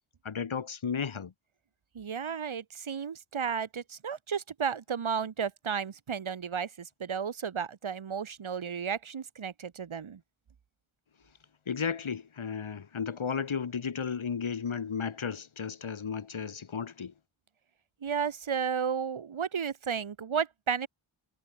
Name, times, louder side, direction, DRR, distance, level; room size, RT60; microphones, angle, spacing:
voice 1, 0.2-1.3 11.7-17.1, left 6 dB, 75° left, 5.3 m, -34 dB
voice 2, 1.9-10.2 18.0-20.9, right 7 dB, 75° right, 3.1 m, -33 dB
wide cardioid pair, 70°, 48 cm